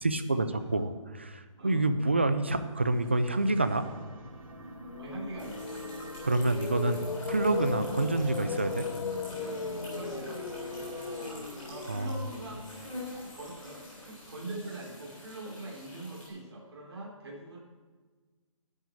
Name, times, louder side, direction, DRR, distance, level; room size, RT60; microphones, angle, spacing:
voice 1, 0.0-3.9 6.2-8.9 11.9-12.1, right 2 dB, 20° right, 10 dB, 0.4 m, -28 dB
sound 1, 2.4-12.6, right 2 dB, 85° right, 2.2 m, -47 dB
sound 2, 4.5-14.6, left 5 dB, 65° left, 1.0 m, -38 dB
voice 2, 5.0-5.7 9.9-10.5 11.6-12.7 13.3-17.6, right 2 dB, 50° right, -3 dB, 3.3 m, -43 dB
sound 3, 5.4-16.3, left 1 dB, 10° left, 3.1 m, -47 dB
11.0 x 6.0 x 8.5 m, 1.4 s
hypercardioid pair, 175°, 17 cm